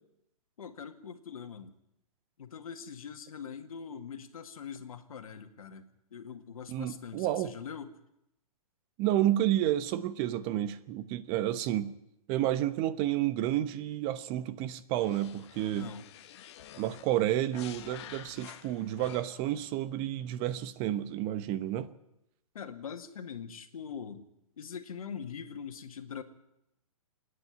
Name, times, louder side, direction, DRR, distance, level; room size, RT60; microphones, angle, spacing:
voice 1, 0.6-1.7 2.4-8.0 15.7-16.1 22.5-24.3 24.6-26.2, left 7 dB, 70° left, 2.0 m, -43 dB
voice 2, 6.7-7.5 9.0-11.9 12.3-15.9 16.8-21.9, right 13 dB, 30° right, 1.1 m, -30 dB
sound 1, 15.0-19.6, left 11 dB, 50° left, 1.3 m, -49 dB
27.0 x 10.0 x 9.7 m
hypercardioid pair, 140°, 19 cm